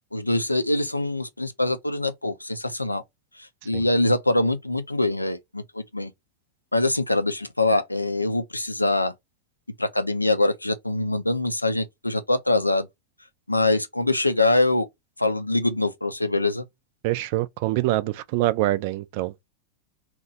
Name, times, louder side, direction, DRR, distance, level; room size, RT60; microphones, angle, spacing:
voice 1, 0.1-3.0 3.4-6.1 6.7-9.1 9.8-12.9 13.5-14.9 15.2-16.6, left 2 dB, 85° left, 0.4 m, -24 dB
voice 2, 17.0-19.5, right 17 dB, 50° right, 0.4 m, -25 dB
2.8 x 2.2 x 4.0 m
figure-of-eight pair, 90°, 0 cm